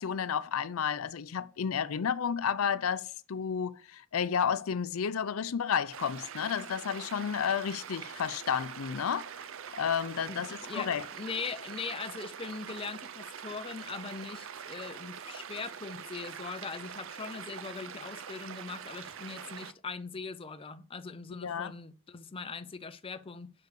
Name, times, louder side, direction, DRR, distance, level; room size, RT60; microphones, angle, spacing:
voice 1, 0.0-9.3 9.8-11.0 21.4-21.7, left 7 dB, 90° left, 0.5 m, -31 dB
sound 1, 5.9-19.7, right 8 dB, 70° right, 0.6 m, -44 dB
voice 2, 10.3-23.5, left 4 dB, 25° left, 0.5 m, -41 dB
6.7 x 4.8 x 6.4 m
head